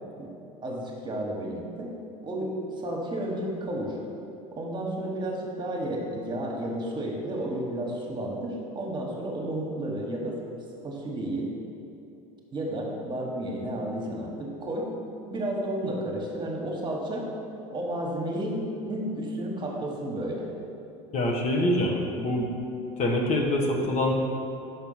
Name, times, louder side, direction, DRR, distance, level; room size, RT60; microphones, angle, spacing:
voice 1, 0.6-1.9 2.2-4.0 4.5-10.4 10.8-11.5 12.5-14.9 15.3-17.2 17.7-20.5, right 1 dB, 25° right, -2 dB, 1.4 m, -32 dB
voice 2, 21.1-22.5 23.0-24.1, left 1 dB, 40° left, 0 dB, 1.0 m, -25 dB
5.9 x 4.4 x 5.6 m, 2.7 s
hypercardioid pair, 85°, 18 cm